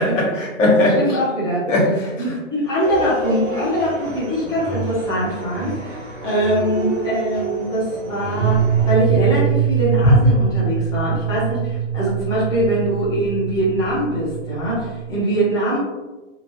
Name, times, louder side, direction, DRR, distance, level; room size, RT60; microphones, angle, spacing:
voice 1, 0.0-1.2 1.7-2.3 10.0-10.2, left 1 dB, 85° left, -2 dB, 1.3 m, -18 dB
voice 2, 1.0-1.6 2.2-8.6 8.9-15.8, right 1 dB, 10° left, -8 dB, 0.7 m, -22 dB
sound 1, 2.8-9.0, right 2 dB, 25° right, 0.7 m, -30 dB
sound 2, 8.4-15.2, right 9 dB, 60° right, 0.8 m, -23 dB
3.0 x 2.5 x 3.0 m, 1.1 s
hypercardioid pair, 155°, 37 cm